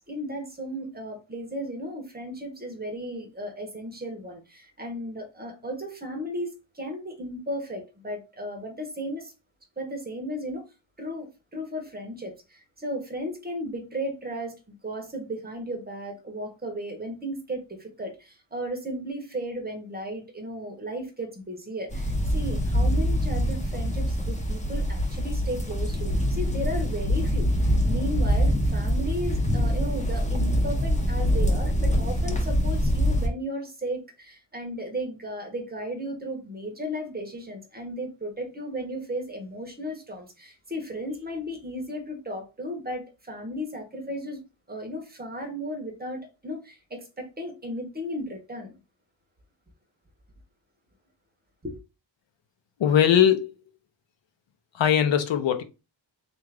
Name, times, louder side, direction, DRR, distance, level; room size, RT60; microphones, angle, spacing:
voice 1, 0.0-9.3 9.8-10.6 11.0-44.4 44.7-48.7 51.6-51.8, equal, 20° right, 0.7 m, -35 dB
sound 1, 21.9-33.3, equal, 15° left, 0.5 m, -24 dB
voice 2, 52.8-53.5 54.7-55.6, left 9 dB, 70° left, 0.6 m, -20 dB
3.6 x 2.4 x 3.2 m
wide cardioid pair, 165°, 47 cm